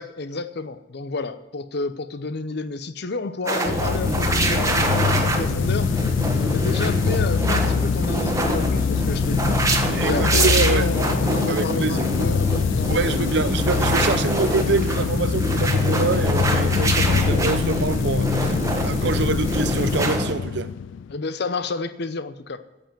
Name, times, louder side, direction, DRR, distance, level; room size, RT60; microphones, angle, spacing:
voice 1, 0.0-13.2 21.1-22.6, left 3 dB, 60° left, 0.7 m, -31 dB
sound 1, 3.5-20.3, right 2 dB, 15° right, 1.3 m, -25 dB
sound 2, 3.7-21.2, left 6 dB, 75° left, 0.3 m, -24 dB
voice 2, 9.9-10.9 11.5-12.0 12.9-20.7, right 4 dB, 65° right, 0.6 m, -26 dB
9.7 x 7.9 x 9.0 m
head